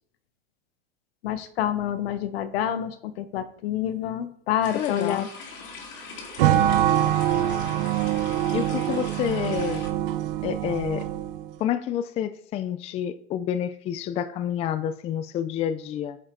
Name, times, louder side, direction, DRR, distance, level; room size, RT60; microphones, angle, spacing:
voice 1, 1.2-5.2, left 10 dB, 70° left, 12 dB, 1.2 m, -28 dB
sound 1, 4.6-9.9, left 4 dB, 35° left, 2.3 m, -42 dB
voice 2, 4.7-5.3 8.5-9.8 10.4-11.1 11.6-16.2, left 9 dB, 20° left, 12 dB, 0.4 m, -28 dB
sound 2, 5.3-10.5, right 6 dB, 25° right, 3.3 m, -47 dB
sound 3, 6.4-11.5, right 12 dB, 60° right, 0.8 m, -24 dB
8.7 x 7.5 x 3.9 m, 0.66 s
supercardioid pair, 145°, 31 cm